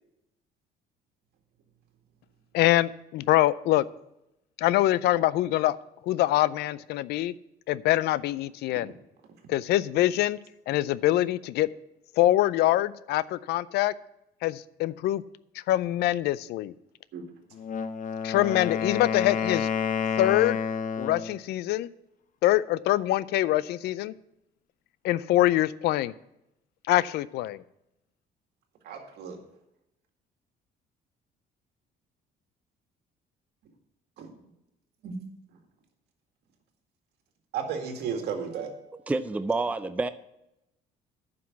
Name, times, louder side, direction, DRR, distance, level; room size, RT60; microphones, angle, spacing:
voice 1, 2.5-3.8 4.6-5.8 6.0-7.3 7.7-8.9 9.5-10.4 10.7-11.7 12.2-13.9 14.4-15.2 15.7-16.7 18.2-19.7 20.2-20.6 21.0-21.9 22.4-24.1 25.0-26.1 26.9-27.6, left 15 dB, 75° left, 0.4 m, -24 dB
Wind instrument woodwind instrument, 17.5-21.4, left 7 dB, 50° left, 0.8 m, -29 dB
voice 2, 28.8-29.4 34.2-34.3 35.0-35.1 37.5-38.8, right 6 dB, 75° right, 2.1 m, -34 dB
voice 3, 39.1-40.1, right 3 dB, 10° right, 0.4 m, -28 dB
9.6 x 6.0 x 7.1 m
cardioid pair, 110°, 17 cm